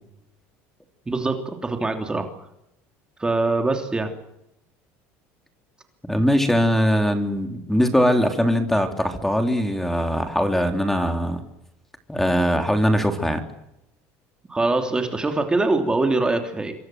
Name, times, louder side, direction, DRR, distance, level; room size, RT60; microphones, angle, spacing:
voice 1, 1.1-2.3 3.2-4.1 14.5-16.7, right 2 dB, 15° right, 5 dB, 3.1 m, -23 dB
voice 2, 6.0-11.4 12.1-13.4, equal, 5° left, 6 dB, 3.4 m, -21 dB
26.5 x 23.5 x 7.8 m, 0.83 s
supercardioid pair, 120°, 6 cm